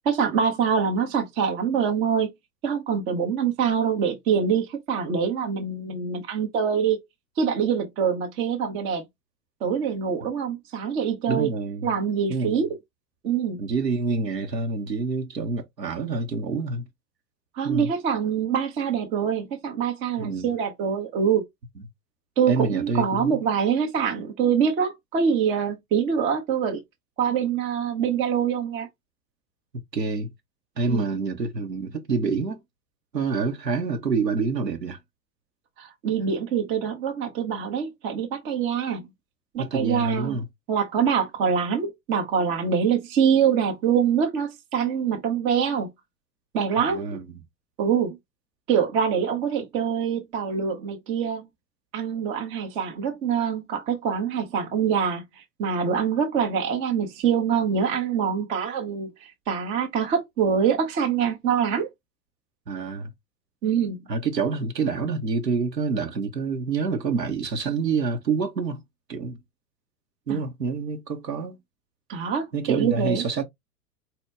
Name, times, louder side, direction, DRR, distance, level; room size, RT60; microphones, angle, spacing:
voice 1, 0.1-2.3 2.6-7.0 7.4-9.0 9.6-11.5 11.8-12.7 13.2-13.6 17.6-21.4 22.4-26.8 27.2-28.9 30.8-31.2 35.8-39.0 39.5-40.4 40.7-45.9 46.5-47.1 47.8-48.2 48.7-51.5 51.9-61.9 63.6-64.0 70.3-70.4 72.1-73.3, right 7 dB, 15° right, 0.3 m, -24 dB
voice 2, 11.3-11.9 12.3-12.7 13.6-16.9 17.6-17.9 20.2-20.5 22.5-23.4 29.9-30.3 30.8-32.6 33.1-35.0 39.6-40.5 46.8-47.2 62.7-63.1 64.1-68.8 69.1-69.4 70.3-71.6 72.5-73.4, right 4 dB, 90° right, 0.8 m, -27 dB
4.3 x 2.1 x 3.3 m
figure-of-eight pair, 95°, 48 cm